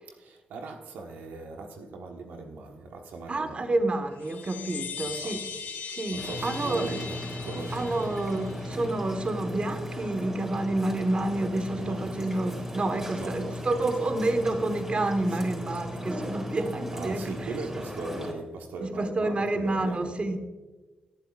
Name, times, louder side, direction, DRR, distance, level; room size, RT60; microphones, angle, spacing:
voice 1, 0.1-3.8 5.0-5.4 6.1-8.8 11.7-12.2 13.1-13.9 15.3-15.5 16.9-20.4, right 3 dB, 85° right, 1.3 m, -40 dB
voice 2, 3.3-5.5 5.9-7.0 7.7-17.3 18.8-20.4, right 2 dB, 40° right, 1.4 m, -29 dB
Chime, 4.1-8.8, left 6 dB, 85° left, 2.6 m, -39 dB
sound 1, 6.2-18.3, left 1 dB, 20° right, 4.0 m, -37 dB
18.5 x 10.0 x 2.5 m
cardioid pair, 60°, 3 cm